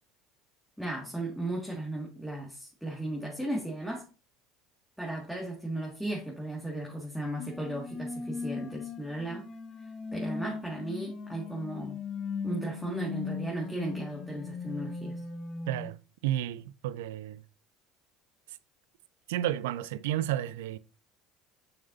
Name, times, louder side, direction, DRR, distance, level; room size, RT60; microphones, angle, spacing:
voice 1, 0.8-4.0 5.0-9.4 10.1-12.0 12.4-15.2, right 1 dB, ahead, 2.1 m, -36 dB
sound 1, 7.4-15.9, left 4 dB, 40° left, 1.2 m, -38 dB
voice 2, 15.7-16.0 16.2-17.4 19.3-20.8, right 13 dB, 75° right, 0.4 m, -31 dB
6.9 x 6.5 x 2.7 m
hypercardioid pair, 70°, 0 cm